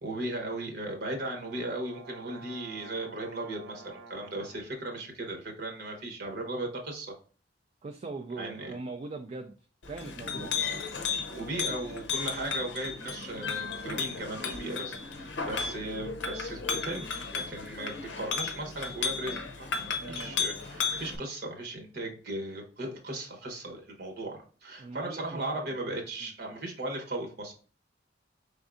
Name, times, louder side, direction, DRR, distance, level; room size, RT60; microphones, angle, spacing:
voice 1, 0.0-7.1 8.4-8.7 10.4-10.5 11.3-27.5, right 1 dB, 55° right, 1.0 m, -37 dB
sound 1, 0.8-4.7, right 4 dB, 75° right, 0.6 m, -50 dB
voice 2, 7.8-9.6 9.9-10.7 20.0-20.3 24.8-25.8 26.2-26.3, right 3 dB, 35° right, 0.3 m, -41 dB
Chink clink, 9.8-21.2, left 5 dB, 75° left, 0.6 m, -34 dB
5.1 x 3.4 x 2.5 m
head